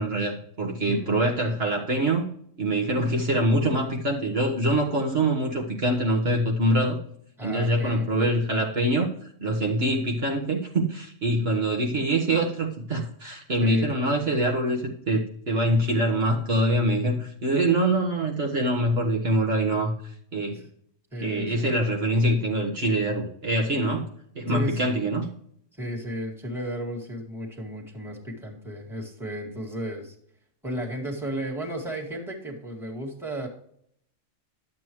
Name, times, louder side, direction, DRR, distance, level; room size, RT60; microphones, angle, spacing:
voice 1, 0.0-2.2 2.6-7.0 7.4-9.1 9.4-20.6 21.2-24.1 24.3-25.3, right 1 dB, 55° right, -1 dB, 1.6 m, -24 dB
voice 2, 7.4-8.1 13.6-13.9 20.5-20.7 21.1-21.7 24.5-24.8 25.7-30.2 30.6-33.5, equal, ahead, -2 dB, 2.0 m, -34 dB
11.5 x 7.7 x 3.1 m, 0.67 s
omnidirectional pair, 1.3 m